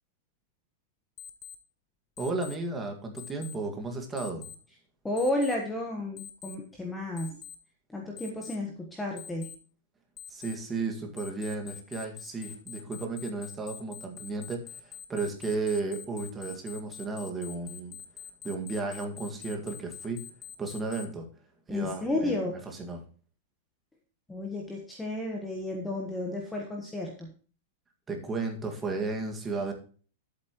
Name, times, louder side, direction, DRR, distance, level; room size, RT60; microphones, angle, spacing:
Alarm, 1.2-1.6 2.2-2.6 3.2-3.6 4.2-4.6 5.2-5.6 6.2-6.6 7.2-7.6 8.2-8.6 9.2-9.6 10.2-10.6 11.2-21.1, left 10 dB, 20° left, 0.8 m, -44 dB
voice 1, 2.2-4.5 10.3-18.0 18.4-20.2 20.6-21.3 21.7-23.0 28.1-29.7, right 3 dB, 10° right, 3 dB, 1.8 m, -34 dB
voice 2, 5.0-7.4 7.9-9.5 21.7-22.6 24.3-27.3, left 1 dB, 5° left, 0 dB, 1.2 m, -32 dB
11.5 x 8.2 x 3.0 m, 0.40 s
supercardioid pair, 170°, 0 cm